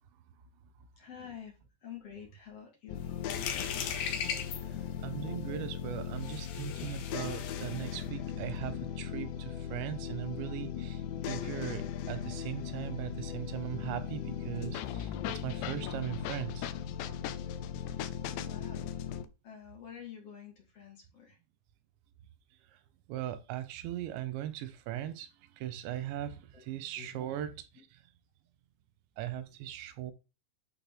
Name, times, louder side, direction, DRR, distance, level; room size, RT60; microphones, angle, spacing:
voice 1, 1.0-1.5 1.8-3.2 18.3-19.0 19.4-21.4 26.5-26.6 27.0-27.3, left 8 dB, 45° left, 2.3 m, -48 dB
sound 1, 2.9-19.3, left 9 dB, 85° left, 2.8 m, -38 dB
sound 2, 3.0-8.1, left 7 dB, 65° left, 2.9 m, -39 dB
voice 2, 5.0-16.7 23.1-25.3 25.6-27.5 29.2-30.1, right 12 dB, 85° right, 3.2 m, -39 dB
11.5 x 4.2 x 3.7 m
omnidirectional pair, 5.1 m